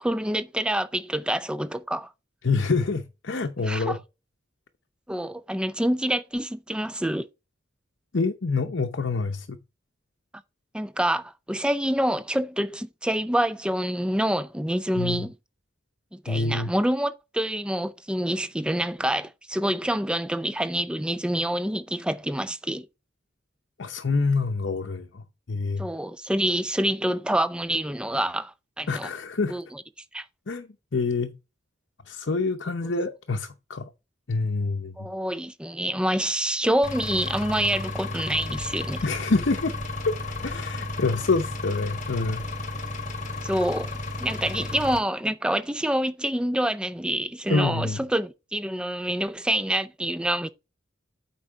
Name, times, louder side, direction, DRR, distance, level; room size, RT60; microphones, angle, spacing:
voice 1, 0.0-2.1 3.6-4.0 5.1-7.2 10.7-15.3 16.1-22.9 25.8-29.1 29.5-29.8 30.1-30.2 32.8-32.9 35.0-39.0 43.4-43.9 44.2-50.5, right 1 dB, 5° right, 0.4 m, -27 dB
voice 2, 2.4-4.0 8.1-9.6 14.9-15.3 16.3-16.7 23.8-25.9 28.9-29.6 30.5-31.3 32.1-33.9 34.3-34.9 39.0-39.7 40.1-42.4 47.5-48.0, left 3 dB, 70° left, 0.7 m, -26 dB
Engine, 36.8-45.0, left 2 dB, 40° left, 1.6 m, -33 dB
8.5 x 5.3 x 3.5 m
head